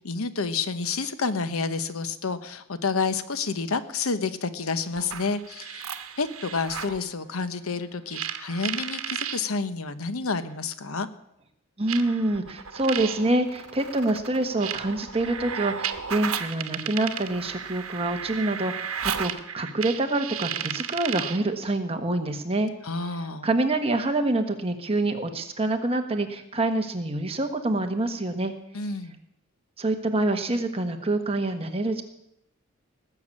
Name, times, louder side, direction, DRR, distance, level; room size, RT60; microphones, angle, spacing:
voice 1, 0.0-11.1 22.8-23.5 28.7-29.2, left 4 dB, 85° left, 11 dB, 1.0 m, -29 dB
sound 1, 5.0-7.0 8.1-9.4 10.5-10.6 11.9-21.5, right 8 dB, 85° right, 1.1 m, -34 dB
voice 2, 11.8-22.7 23.4-28.5 29.8-32.0, right 2 dB, 25° right, 5 dB, 1.4 m, -26 dB
19.0 x 7.0 x 8.5 m, 0.79 s
head